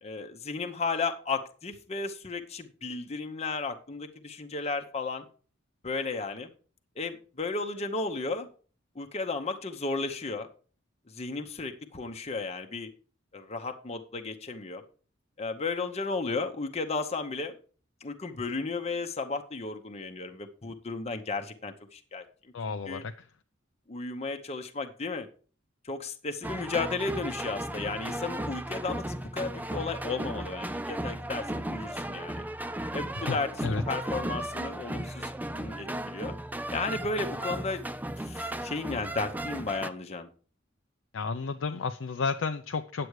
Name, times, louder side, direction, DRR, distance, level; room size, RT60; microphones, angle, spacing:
voice 1, 0.0-5.2 5.8-6.5 7.0-8.5 8.9-10.5 11.1-12.9 13.3-14.8 15.4-17.5 18.0-22.2 22.9-23.0 23.9-25.3 25.8-32.4 32.9-33.5 33.9-36.3 36.7-37.8 38.2-40.3, left 3 dB, 35° left, 5 dB, 0.9 m, -34 dB
voice 2, 22.5-23.3 33.1-33.8 41.1-43.1, left 4 dB, 70° left, 7 dB, 0.5 m, -32 dB
sound 1, 26.4-39.9, right 1 dB, 10° right, 0.4 m, -35 dB
9.5 x 7.7 x 4.7 m, 0.39 s
head